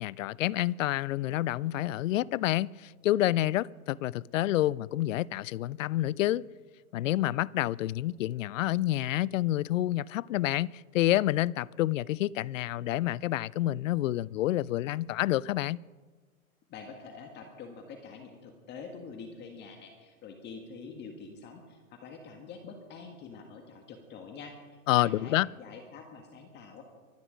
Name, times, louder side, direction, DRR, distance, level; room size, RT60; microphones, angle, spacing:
voice 1, 0.0-6.5 6.9-15.8 24.9-25.5, left 14 dB, 65° left, 0.5 m, -28 dB
voice 2, 16.7-26.8, left 5 dB, 25° left, 1.6 m, -46 dB
24.0 x 10.0 x 5.1 m
hypercardioid pair, 135°, 43 cm